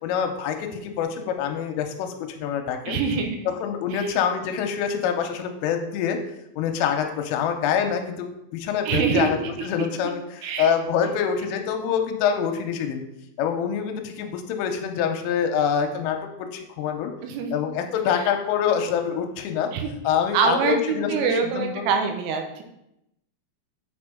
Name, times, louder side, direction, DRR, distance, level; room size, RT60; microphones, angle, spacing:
voice 1, 0.0-3.0 3.5-6.2 6.5-13.0 13.4-17.1 17.5-19.7 20.0-21.9, left 7 dB, 85° left, 6 dB, 3.2 m, -26 dB
voice 2, 2.9-3.4 3.9-4.1 8.9-9.7 10.4-10.7 17.2-17.6 18.1-18.2 19.7-19.9 20.3-22.6, right 6 dB, 90° right, 4 dB, 3.3 m, -25 dB
8.4 x 4.4 x 5.0 m, 0.84 s
omnidirectional pair, 5.9 m